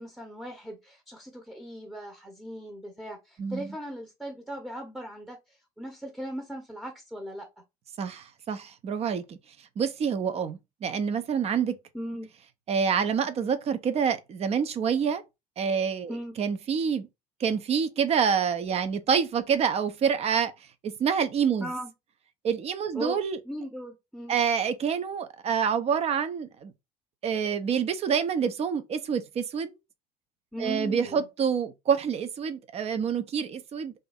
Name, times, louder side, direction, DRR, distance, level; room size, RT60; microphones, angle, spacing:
voice 1, 0.0-7.5 11.9-12.3 16.1-16.3 21.6-21.9 22.9-23.2 23.4-24.3 30.5-31.3, equal, ahead, 0.8 m, -38 dB
voice 2, 8.0-9.4 9.8-11.7 12.7-15.2 15.6-17.1 17.4-20.5 20.8-21.7 22.4-23.4 24.3-26.7 27.2-29.7 30.6-33.9, right 7 dB, 30° right, 0.5 m, -27 dB
2.6 x 2.5 x 4.0 m
figure-of-eight pair, 65°, 20 cm